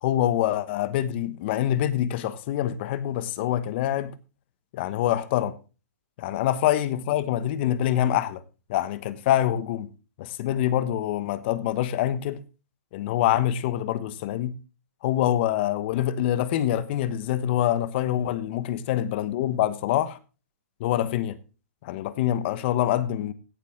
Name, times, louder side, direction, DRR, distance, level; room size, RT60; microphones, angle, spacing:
voice 1, 0.0-4.1 4.7-5.6 6.2-8.4 8.7-9.9 10.2-12.4 12.9-14.6 15.0-20.2 20.8-21.4 21.8-23.3, left 12 dB, 45° left, 1.1 m, -25 dB
16.5 x 7.6 x 3.6 m
hypercardioid pair, 140°, 8 cm